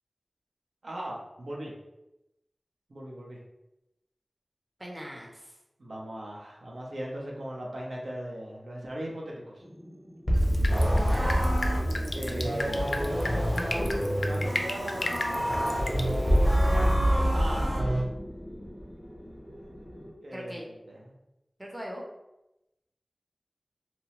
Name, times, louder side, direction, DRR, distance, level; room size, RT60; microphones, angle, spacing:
voice 1, 0.8-1.7 2.9-3.4 5.8-9.6 12.1-13.1 14.1-15.2 17.3-17.9 20.2-21.2, right 1 dB, 90° right, -2 dB, 0.6 m, -38 dB
voice 2, 4.8-5.5 11.0-11.5 17.2-18.0 20.3-20.6 21.6-22.0, equal, 15° right, -2 dB, 0.6 m, -41 dB
sound 1, 9.6-20.1, equal, 35° left, 0.7 m, -29 dB
Drip, 10.4-16.9, left 1 dB, 60° left, 0.3 m, -36 dB
sound 2, 10.7-18.0, equal, 65° right, 1.1 m, -30 dB
2.8 x 2.0 x 2.9 m, 0.92 s
wide cardioid pair, 50°, 0 cm